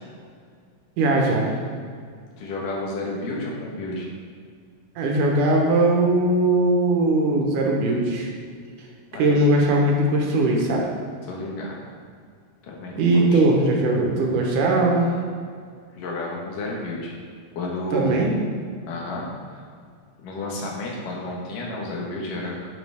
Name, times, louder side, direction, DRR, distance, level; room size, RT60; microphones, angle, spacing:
voice 1, 1.0-1.5 5.0-8.3 9.2-10.9 13.0-15.1 17.9-18.3, right 2 dB, 75° right, 0 dB, 2.6 m, -20 dB
voice 2, 2.4-4.1 9.1-9.3 11.3-11.8 12.6-13.4 15.9-17.1 17.6-18.2 18.9-19.6 20.2-22.6, left 2 dB, 80° left, -2 dB, 3.0 m, -31 dB
9.5 x 7.0 x 3.5 m, 2.1 s
omnidirectional pair, 3.7 m